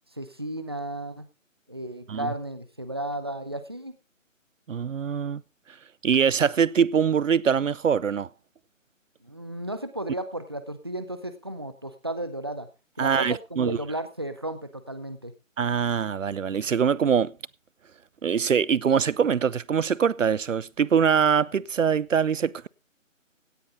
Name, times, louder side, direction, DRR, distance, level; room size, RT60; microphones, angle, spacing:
voice 1, 0.2-1.3 1.7-4.0 9.2-12.7 13.0-15.3, right 1 dB, 20° right, 0.6 m, -34 dB
voice 2, 4.7-5.4 6.0-8.3 13.0-13.8 15.6-17.3 18.2-22.7, right 7 dB, 70° right, 0.6 m, -23 dB
16.5 x 9.7 x 3.7 m
figure-of-eight pair, 165°, 40 cm